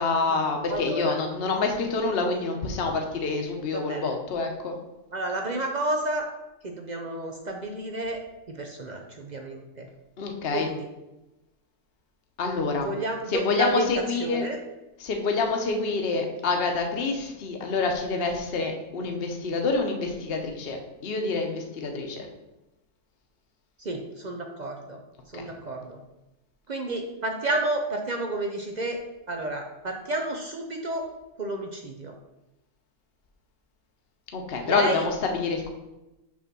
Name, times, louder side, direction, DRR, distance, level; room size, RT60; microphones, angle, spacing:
voice 1, 0.0-4.8 10.2-10.7 12.4-12.9 13.3-14.4 15.0-22.3 25.3-25.4 34.3-35.7, left 3 dB, 45° left, 3 dB, 1.0 m, -27 dB
voice 2, 0.7-1.1 3.7-4.1 5.1-6.3 6.6-8.2 8.5-9.9 10.5-10.9 12.8-13.9 14.2-14.6 23.8-25.0 25.3-26.0 26.7-29.0 29.3-31.0 31.4-32.1 34.6-35.0, right 2 dB, 60° right, 2 dB, 0.4 m, -31 dB
6.0 x 3.7 x 6.0 m, 0.99 s
omnidirectional pair, 1.6 m